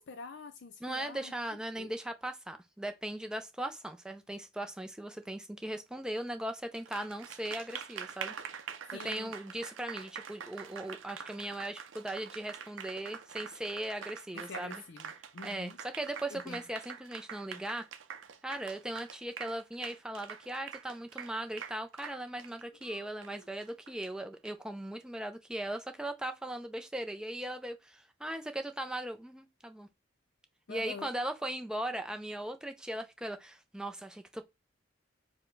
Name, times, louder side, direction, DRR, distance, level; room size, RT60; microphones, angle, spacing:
voice 1, 0.0-1.3 1.8-1.9 8.9-9.3 14.3-15.8 16.3-16.6 22.8-23.5 30.7-31.1, left 4 dB, 65° left, 0.5 m, -46 dB
voice 2, 0.8-8.3 8.9-14.8 15.4-17.9 18.4-29.9 30.7-34.4, right 1 dB, 5° right, 0.4 m, -38 dB
Applause, 6.7-24.5, right 7 dB, 80° right, 0.5 m, -45 dB
4.9 x 2.1 x 4.5 m
head